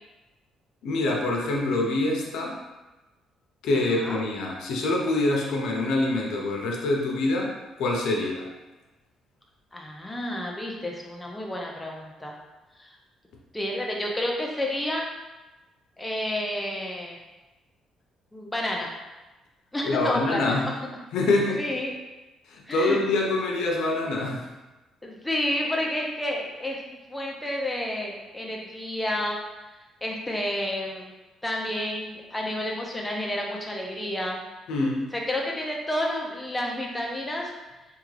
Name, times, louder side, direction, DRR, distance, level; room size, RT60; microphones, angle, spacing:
voice 1, 0.8-2.6 3.6-7.5 7.8-8.5 19.8-20.7 21.1-21.6 22.5-24.4 34.7-35.0, left 2 dB, 80° left, -1 dB, 0.6 m, -25 dB
voice 2, 9.7-12.4 12.8-12.9 13.5-15.1 16.0-17.2 18.3-18.9 19.7-20.7 21.6-21.9 22.7-23.0 25.0-26.8 27.1-29.4 30.0-31.1 31.4-34.4 35.1-37.5, left 1 dB, 10° left, -2 dB, 0.5 m, -30 dB
3.5 x 2.3 x 3.2 m, 1.1 s
cardioid pair, 120°, 0 cm